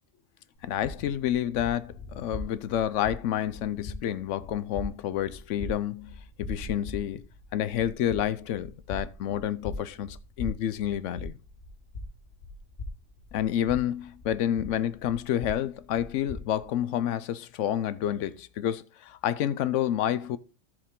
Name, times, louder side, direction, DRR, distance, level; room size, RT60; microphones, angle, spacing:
voice 1, 0.6-7.2 7.5-11.3 13.3-20.4, left 11 dB, 80° left, 0.9 m, -29 dB
sound 1, 0.6-16.8, left 2 dB, 55° left, 2.1 m, -42 dB
14.0 x 5.0 x 3.7 m
omnidirectional pair, 1.2 m